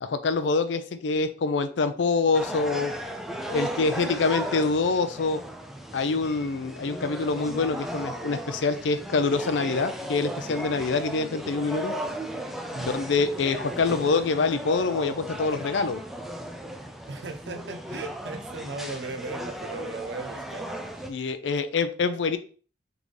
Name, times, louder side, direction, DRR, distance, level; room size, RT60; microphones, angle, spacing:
voice 1, 0.0-2.9 3.5-5.4 5.9-11.9 12.8-16.0 21.1-22.4, left 4 dB, 90° left, 11 dB, 0.5 m, -25 dB
sound 1, 2.3-21.1, equal, ahead, 0.4 m, -36 dB
voice 2, 12.7-13.0 17.1-20.7 21.5-21.6, right 3 dB, 70° right, 7 dB, 0.6 m, -37 dB
3.9 x 3.5 x 3.2 m, 0.40 s
head